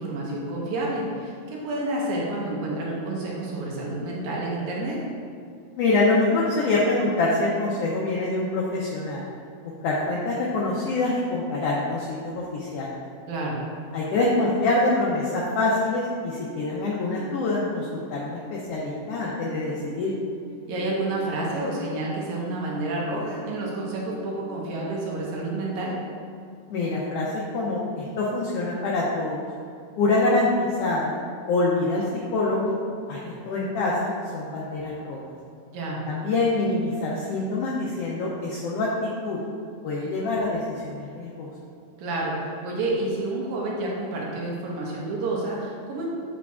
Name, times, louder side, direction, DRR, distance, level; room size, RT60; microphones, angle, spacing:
voice 1, 0.0-5.0 13.3-13.6 20.7-26.0 35.7-36.0 42.0-46.1, right 2 dB, 90° right, -4 dB, 2.5 m, -29 dB
voice 2, 5.8-9.2 9.8-13.0 13.9-20.1 26.7-29.5 30.0-31.1 31.4-32.0 32.3-32.7 33.1-35.2 36.1-39.4 39.8-41.5, left 2 dB, 75° left, -4 dB, 1.4 m, -25 dB
Alarm, 16.3-25.2, right 1 dB, 70° right, 1.5 m, -46 dB
7.2 x 5.9 x 2.4 m, 2.4 s
omnidirectional pair, 3.4 m